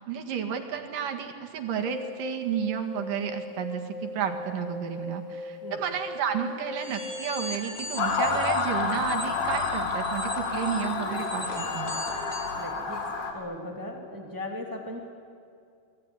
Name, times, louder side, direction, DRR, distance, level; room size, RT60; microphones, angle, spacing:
voice 1, 0.0-11.9, right 8 dB, 90° right, 5 dB, 3.5 m, -32 dB
sound 1, 1.7-7.7, left 3 dB, 50° left, 1.6 m, -39 dB
sound 2, 6.8-12.6, left 1 dB, 20° left, 3.3 m, -40 dB
Motor vehicle (road) / Siren, 8.0-13.3, left 4 dB, 75° left, 3.9 m, -29 dB
voice 2, 12.6-13.0 13.3-15.0, left 1 dB, 5° right, 2 dB, 2.3 m, -37 dB
27.5 x 20.0 x 9.9 m, 2.3 s
omnidirectional pair, 3.7 m